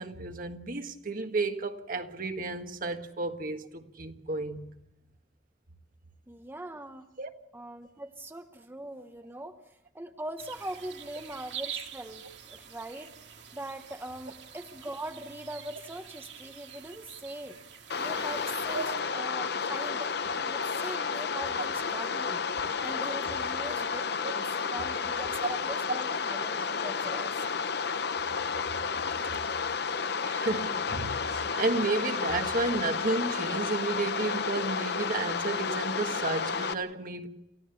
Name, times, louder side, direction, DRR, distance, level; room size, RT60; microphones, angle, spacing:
voice 1, 0.0-4.6 7.2-7.3 18.7-18.8 24.2-24.3 25.4-25.5 30.2-37.3, right 3 dB, 50° right, 1.6 m, -32 dB
voice 2, 6.3-7.1 7.5-17.6 18.0-22.4 22.8-27.4, right 1 dB, 15° right, 0.9 m, -42 dB
sound 1, 10.4-18.9, right 8 dB, 80° right, 2.4 m, -46 dB
sound 2, 17.9-36.7, left 5 dB, 65° left, 0.8 m, -31 dB
28.5 x 16.0 x 7.0 m
head